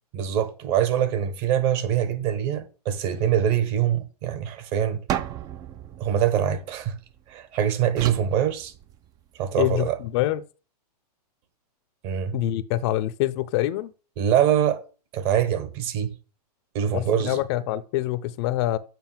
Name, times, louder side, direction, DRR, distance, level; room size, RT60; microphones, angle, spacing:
voice 1, 0.1-5.0 6.0-6.9 7.3-8.7 9.4-10.0 12.0-12.4 14.2-14.8 15.1-16.1 16.7-17.4, right 9 dB, 40° right, 1.3 m, -24 dB
sound 1, 5.1-7.3 8.0-9.3, right 11 dB, 20° right, 0.4 m, -34 dB
voice 2, 9.6-10.4 12.3-13.9 16.9-18.8, left 14 dB, 40° left, 0.5 m, -25 dB
7.6 x 5.4 x 7.3 m
hypercardioid pair, 130°, 21 cm